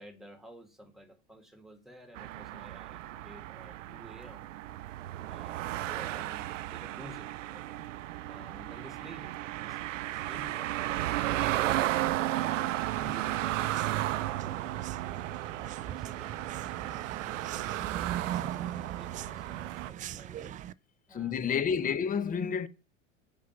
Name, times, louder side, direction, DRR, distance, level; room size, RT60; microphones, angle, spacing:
voice 1, 0.0-4.5 5.3-7.9 8.3-10.7 13.0-20.6 21.1-22.0, equal, ahead, 2.2 m, -52 dB
sound 1, 2.2-19.9, right 15 dB, 75° right, 0.6 m, -34 dB
sound 2, 12.9-20.7, right 11 dB, 20° right, 0.4 m, -41 dB
voice 2, 21.1-22.7, left 7 dB, 20° left, 0.9 m, -30 dB
8.4 x 5.5 x 6.0 m
hypercardioid pair, 90°, 38 cm